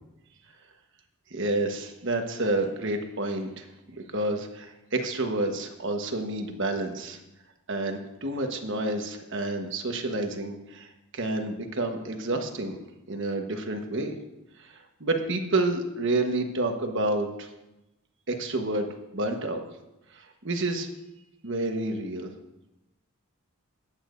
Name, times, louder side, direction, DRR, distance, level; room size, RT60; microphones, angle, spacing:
voice 1, 1.3-3.7 3.9-7.2 7.7-12.8 13.1-14.1 15.0-17.5 18.3-18.9 19.1-19.6 20.1-20.9 21.4-22.3, right 2 dB, 55° right, 5 dB, 1.2 m, -29 dB
20.5 x 8.8 x 2.6 m, 0.96 s
head